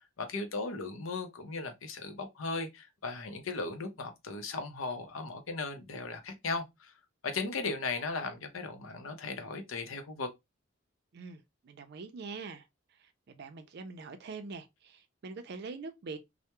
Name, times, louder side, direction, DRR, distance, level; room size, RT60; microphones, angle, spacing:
voice 1, 0.2-6.9 7.2-10.3, left 3 dB, 90° left, 0.6 m, -37 dB
voice 2, 11.1-12.7 13.0-16.2, right 4 dB, 55° right, 0.4 m, -44 dB
2.2 x 2.0 x 2.9 m
head